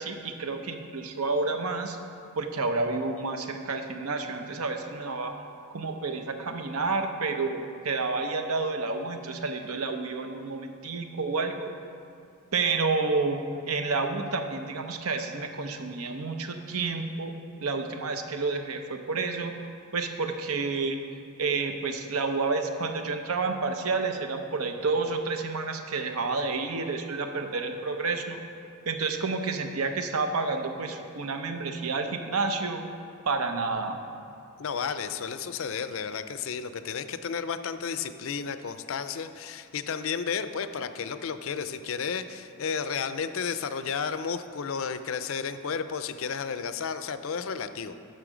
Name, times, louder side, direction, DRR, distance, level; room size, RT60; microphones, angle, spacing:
voice 1, 0.0-2.0 2.4-5.4 5.7-11.7 12.5-13.4 13.7-17.3 17.6-19.5 19.9-21.0 21.4-28.4 28.9-32.8 33.2-34.0, right 4 dB, 80° right, 6 dB, 0.8 m, -30 dB
voice 2, 34.6-47.9, left 6 dB, 65° left, 11 dB, 0.4 m, -32 dB
11.0 x 6.4 x 5.0 m, 2.4 s
head